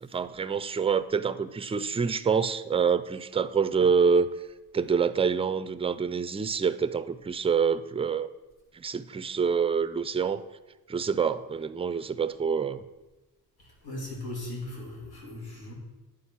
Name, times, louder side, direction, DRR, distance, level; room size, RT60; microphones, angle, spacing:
voice 1, 0.0-4.3 4.7-8.3 8.7-10.4 10.9-12.8, right 6 dB, 15° right, 13 dB, 0.3 m, -26 dB
voice 2, 13.6-15.7, left 1 dB, 80° left, -2 dB, 2.5 m, -38 dB
10.0 x 4.8 x 5.9 m, 1.1 s
wide cardioid pair, 105°, 37 cm